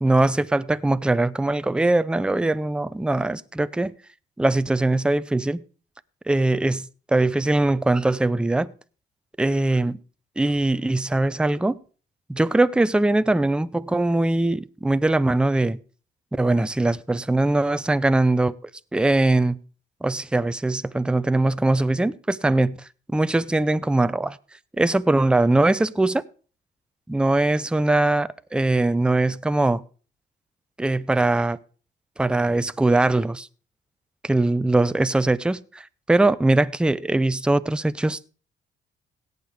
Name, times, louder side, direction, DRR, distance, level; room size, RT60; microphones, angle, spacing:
voice 1, 0.0-3.9 4.4-5.6 6.3-8.7 9.4-10.0 10.4-11.8 12.3-15.8 16.4-18.6 18.9-19.6 20.0-22.8 23.1-24.4 24.8-26.2 27.1-29.8 30.8-31.6 32.2-33.5 34.2-38.2, right 2 dB, 5° right, 0.5 m, -21 dB
17.5 x 6.7 x 3.6 m
cardioid pair, 90°, 20 cm